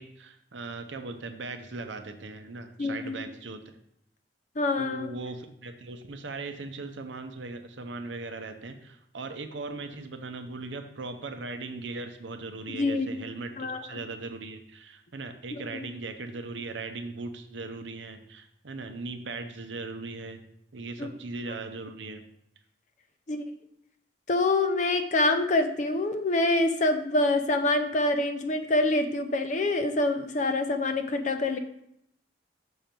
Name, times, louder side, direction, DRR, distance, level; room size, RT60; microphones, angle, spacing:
voice 1, 0.0-3.8 4.7-20.4 20.7-22.2, right 3 dB, 85° right, 7 dB, 0.8 m, -39 dB
voice 2, 2.8-3.2 4.6-5.1 12.7-13.1 13.6-13.8 15.5-15.8 21.0-21.1 23.3-23.5 24.3-31.6, left 2 dB, 40° left, 7 dB, 0.6 m, -26 dB
6.4 x 4.5 x 5.1 m, 0.76 s
head